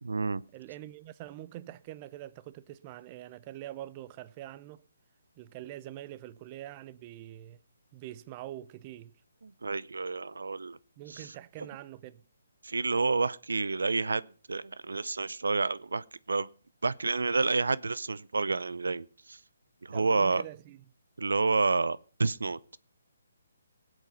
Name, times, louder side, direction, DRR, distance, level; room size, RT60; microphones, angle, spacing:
voice 1, 0.0-0.4 9.6-10.8 11.1-11.2 12.6-14.2 14.5-16.5 16.8-19.4 19.8-20.4 21.2-22.6, right 3 dB, 80° right, 0.6 m, -29 dB
voice 2, 0.5-4.8 5.4-7.6 7.9-9.2 11.0-12.2 19.9-20.8, right 14 dB, 30° right, 0.6 m, -44 dB
19.0 x 7.9 x 5.6 m
figure-of-eight pair, 145°, 0 cm